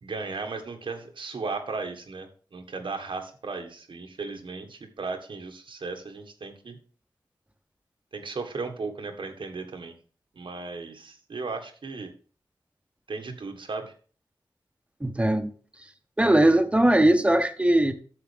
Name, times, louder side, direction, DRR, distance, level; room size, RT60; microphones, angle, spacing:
voice 1, 0.0-6.8 8.1-9.9 10.3-12.1 13.1-13.9, right 4 dB, 85° right, 5 dB, 1.7 m, -36 dB
voice 2, 15.0-15.5 16.2-17.9, right 1 dB, 15° right, 9 dB, 1.2 m, -20 dB
11.0 x 7.3 x 3.5 m, 0.40 s
wide cardioid pair, 85°, 8 cm